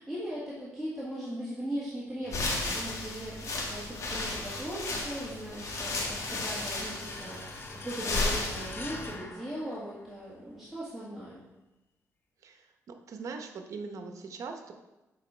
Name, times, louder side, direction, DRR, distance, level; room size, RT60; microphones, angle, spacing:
voice 1, 0.0-11.4, right 1 dB, 5° right, -9 dB, 1.6 m, -39 dB
sound 1, 2.3-9.1, left 2 dB, 65° left, 1.4 m, -34 dB
sound 2, 6.8-10.4, left 3 dB, 40° left, 0.8 m, -45 dB
voice 2, 12.4-14.7, right 4 dB, 65° right, 5 dB, 0.8 m, -41 dB
7.4 x 4.1 x 4.3 m, 1.0 s
cardioid pair, 90°, 6 cm